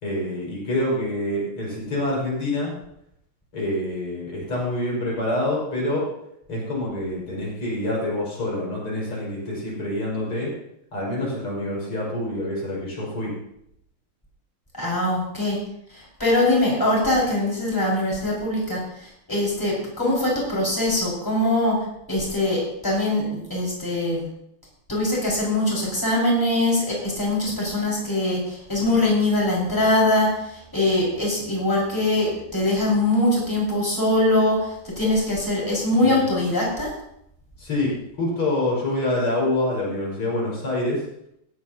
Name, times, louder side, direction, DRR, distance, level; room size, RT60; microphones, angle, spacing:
voice 1, 0.0-2.7 3.5-6.1 6.5-10.5 10.9-13.3 36.0-36.2 37.6-41.0, left 1 dB, 80° left, -4 dB, 6.7 m, -26 dB
voice 2, 14.7-15.6 15.9-21.8 22.1-24.3 24.9-36.9, left 1 dB, 10° left, -4 dB, 5.5 m, -22 dB
16.5 x 15.0 x 2.9 m, 0.76 s
omnidirectional pair, 2.4 m